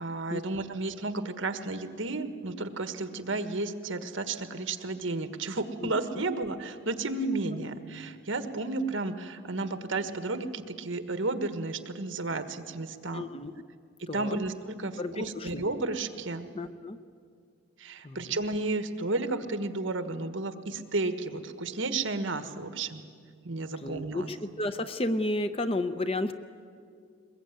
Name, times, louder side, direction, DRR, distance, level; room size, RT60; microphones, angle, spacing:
voice 1, 0.0-13.2 14.0-16.5 17.8-23.0 23.4-24.3, right 2 dB, 65° right, 9 dB, 1.5 m, -32 dB
voice 2, 13.1-13.5 14.1-14.4 15.0-15.6 16.5-17.0 18.0-18.2 23.8-26.3, left 1 dB, 25° left, 10 dB, 0.7 m, -32 dB
22.0 x 21.5 x 9.3 m, 2.2 s
head